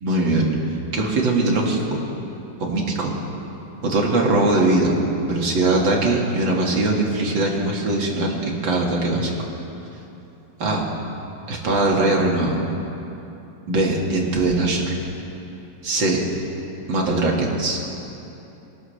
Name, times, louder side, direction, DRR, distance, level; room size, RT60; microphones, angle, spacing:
voice 1, 0.0-0.5 0.9-2.0 2.6-3.1 3.8-5.0 5.2-9.3 10.6-10.8 11.5-12.6 13.7-14.9 15.8-16.2 16.9-17.8, right 2 dB, 75° right, -1 dB, 2.7 m, -21 dB
22.0 x 18.5 x 3.3 m, 2.9 s
omnidirectional pair, 2.1 m